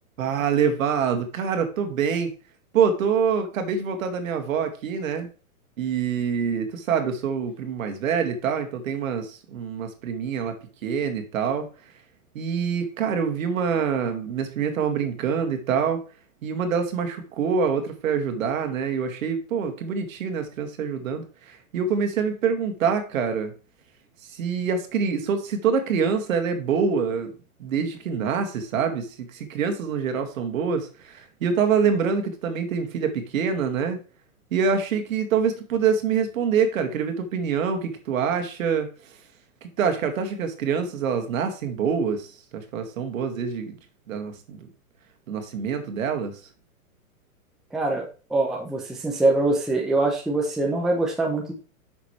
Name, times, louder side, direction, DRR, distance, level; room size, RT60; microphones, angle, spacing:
voice 1, 0.2-2.3 2.7-5.3 5.8-10.6 10.8-11.7 12.3-16.0 16.4-23.5 24.3-27.3 27.6-34.0 34.5-38.9 39.6-43.8 44.1-44.7 45.3-46.4, right 6 dB, 65° right, 6 dB, 1.9 m, -25 dB
voice 2, 47.7-51.5, right 2 dB, ahead, 0 dB, 0.6 m, -24 dB
8.0 x 6.3 x 3.2 m, 0.35 s
hypercardioid pair, 150°, 43 cm